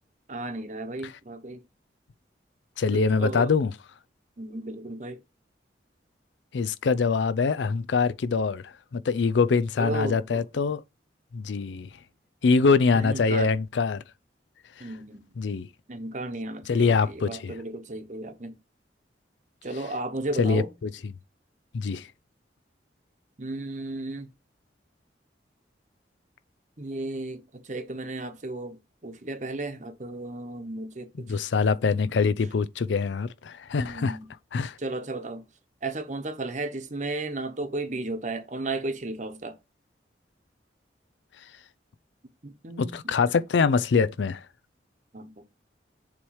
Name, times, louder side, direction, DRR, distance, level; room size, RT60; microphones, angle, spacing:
voice 1, 0.3-1.6 2.9-3.5 4.4-5.2 9.8-10.4 12.9-13.5 14.8-15.3 15.9-18.6 19.6-20.7 23.4-24.3 26.8-28.8 29.0-31.3 33.7-34.3 34.8-35.4 35.8-39.6 42.4-43.0 45.1-45.4, right 2 dB, 40° right, 0.9 m, -34 dB
voice 2, 2.8-3.7 6.5-10.8 11.3-11.9 12.4-14.0 15.4-15.7 16.7-17.5 20.4-21.1 21.7-22.1 31.3-34.2 34.5-34.8 42.8-44.4, left 4 dB, 85° left, 0.4 m, -24 dB
7.2 x 3.1 x 4.7 m
head